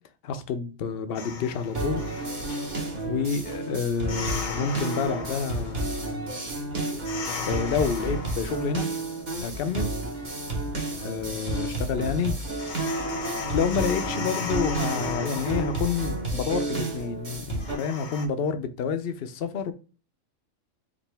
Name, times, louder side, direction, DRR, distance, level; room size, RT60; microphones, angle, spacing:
voice 1, 0.2-2.0 3.0-6.2 7.4-8.9 9.4-10.0 11.0-12.4 12.8-13.2 13.5-19.7, left 6 dB, 55° left, 0.7 m, -29 dB
sound 1, 1.2-18.3, left 5 dB, 75° left, 1.2 m, -38 dB
sound 2, 1.7-17.7, right 2 dB, 35° right, 1.3 m, -31 dB
5.0 x 2.7 x 3.3 m
omnidirectional pair, 1.4 m